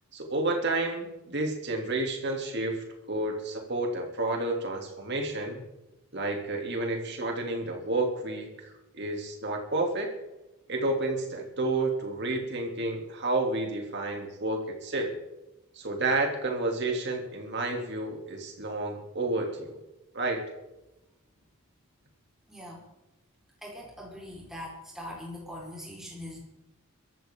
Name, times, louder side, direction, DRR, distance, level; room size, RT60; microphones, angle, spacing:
voice 1, 0.1-5.7 6.1-10.1 10.7-15.1 15.7-19.8 20.1-20.4, right 2 dB, 50° right, 2 dB, 3.1 m, -30 dB
voice 2, 22.5-22.8 23.6-26.4, left 1 dB, ahead, -4 dB, 4.8 m, -42 dB
23.5 x 14.0 x 3.9 m, 0.98 s
head